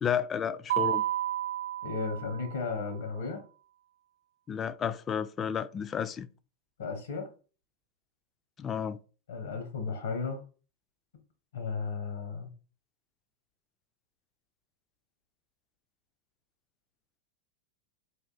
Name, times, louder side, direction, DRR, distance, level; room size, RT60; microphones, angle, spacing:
voice 1, 0.0-1.0 4.5-6.3 8.6-9.0, left 8 dB, 25° left, 0.3 m, -32 dB
Mallet percussion, 0.7-2.8, right 13 dB, 65° right, 0.4 m, -31 dB
voice 2, 1.8-3.4 6.8-7.3 9.3-10.4 11.5-12.5, left 4 dB, 70° left, 1.0 m, -34 dB
4.0 x 2.6 x 3.9 m
figure-of-eight pair, 90°, 0 cm